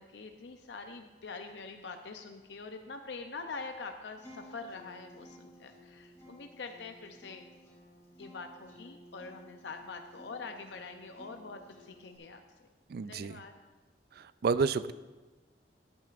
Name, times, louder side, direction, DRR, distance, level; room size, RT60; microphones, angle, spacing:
voice 1, 0.0-7.4 8.2-12.4 13.1-13.5, left 4 dB, 80° left, 5 dB, 0.6 m, -44 dB
Acoustic guitar, 4.2-12.2, equal, 20° left, 3.1 m, -55 dB
voice 2, 12.9-13.4 14.2-14.9, right 5 dB, 60° right, 15 dB, 0.4 m, -30 dB
14.0 x 10.5 x 2.5 m, 1.2 s
head